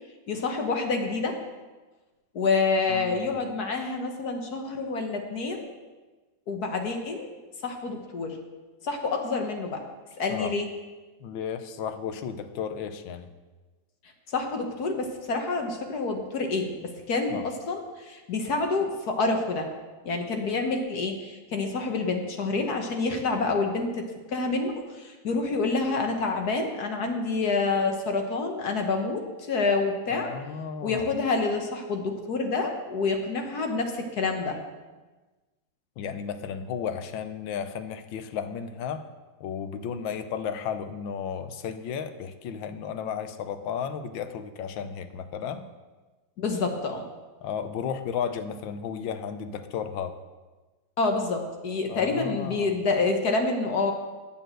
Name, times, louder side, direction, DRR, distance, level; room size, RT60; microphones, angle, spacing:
voice 1, 0.3-1.4 2.3-5.7 6.5-7.3 7.6-8.4 8.8-9.8 10.2-10.7 14.3-19.7 20.0-30.3 30.8-34.6 46.4-47.0 51.0-53.9, left 3 dB, 55° left, 4 dB, 1.6 m, -28 dB
voice 2, 2.9-3.4 10.3-10.5 11.2-13.3 17.3-17.4 30.1-31.1 36.0-39.0 39.4-45.6 47.4-50.1 51.9-52.7, left 7 dB, 85° left, 9 dB, 1.5 m, -34 dB
9.0 x 7.1 x 7.6 m, 1.2 s
omnidirectional pair, 2.1 m